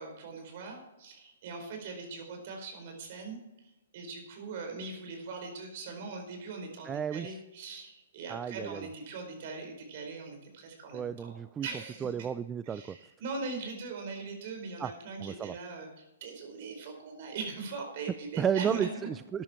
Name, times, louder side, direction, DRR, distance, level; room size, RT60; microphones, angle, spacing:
voice 1, 0.0-11.3 11.6-12.1 12.7-18.8, right 4 dB, 50° right, 3 dB, 4.7 m, -41 dB
voice 2, 6.8-7.4 8.3-8.9 10.9-11.7 12.0-13.0 14.8-14.9 15.2-15.6 18.4-19.4, right 8 dB, 15° right, 14 dB, 0.3 m, -32 dB
14.5 x 10.5 x 4.5 m, 1.0 s
hypercardioid pair, 125°, 0 cm